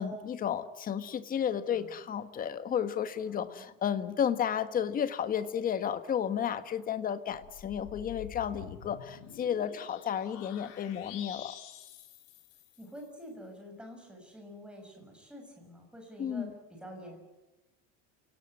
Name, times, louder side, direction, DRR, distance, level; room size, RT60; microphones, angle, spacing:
voice 1, 0.0-11.5 16.2-16.5, left 8 dB, 25° left, 11 dB, 1.5 m, -32 dB
voice 2, 3.2-3.7 12.8-17.2, equal, 5° right, 2 dB, 6.3 m, -48 dB
sound 1, 7.3-13.1, left 9 dB, 65° left, 4.5 m, -48 dB
29.5 x 18.0 x 9.9 m, 1.1 s
cardioid pair, 175°, 33 cm